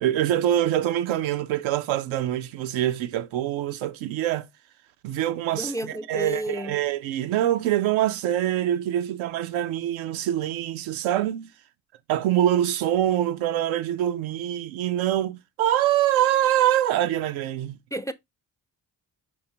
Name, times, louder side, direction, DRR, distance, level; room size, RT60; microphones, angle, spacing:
voice 1, 0.0-4.5 5.0-5.7 6.1-11.5 12.1-17.8, right 12 dB, 85° right, 0.5 m, -24 dB
voice 2, 5.5-6.8 17.9-18.1, right 1 dB, 10° left, 0.3 m, -31 dB
4.9 x 3.7 x 2.7 m
hypercardioid pair, 40°, 46 cm